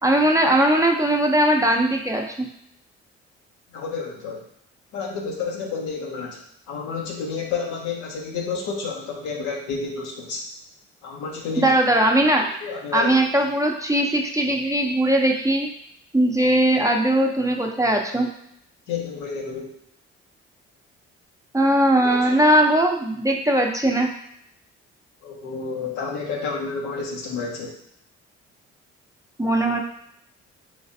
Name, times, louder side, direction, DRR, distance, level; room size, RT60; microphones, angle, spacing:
voice 1, 0.0-2.5 11.6-12.5 12.9-15.7 16.1-18.3 21.5-24.1 29.4-29.8, right 1 dB, 10° right, 1 dB, 0.6 m, -19 dB
voice 2, 3.7-4.4 4.9-6.4 6.7-10.4 11.0-11.7 12.6-13.2 18.9-19.7 22.0-22.4 25.2-27.7, left 5 dB, 75° left, -1 dB, 0.9 m, -30 dB
3.3 x 3.1 x 2.6 m, 0.72 s
hypercardioid pair, 50°, 30 cm